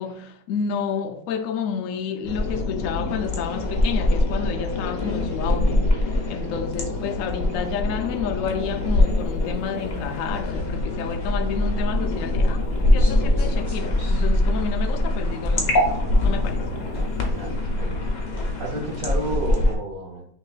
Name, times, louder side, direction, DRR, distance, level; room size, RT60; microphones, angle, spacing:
voice 1, 0.0-6.0 6.3-12.6 12.9-16.7, left 6 dB, 80° left, 0.7 m, -30 dB
sound 1, 2.2-19.7, left 1 dB, 55° left, 1.1 m, -24 dB
sound 2, 11.2-19.4, left 1 dB, 20° left, 1.0 m, -26 dB
voice 2, 17.3-18.0 18.6-20.3, right 2 dB, 55° right, 1.4 m, -31 dB
6.0 x 3.1 x 2.4 m
omnidirectional pair, 1.9 m